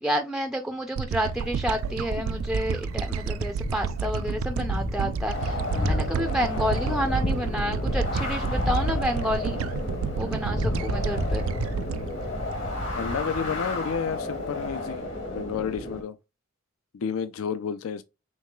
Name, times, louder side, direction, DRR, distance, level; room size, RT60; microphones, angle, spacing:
voice 1, 0.0-9.6 10.2-11.4, equal, 5° right, 0.3 m, -30 dB
sound 1, 1.0-13.4, right 6 dB, 75° right, 0.3 m, -31 dB
Thunder, 1.3-14.7, left 1 dB, 35° left, 0.6 m, -32 dB
sound 2, 5.3-16.0, left 2 dB, 60° left, 1.4 m, -34 dB
voice 2, 13.0-16.2 16.9-18.0, left 6 dB, 80° left, 0.4 m, -31 dB
5.3 x 3.1 x 2.2 m
head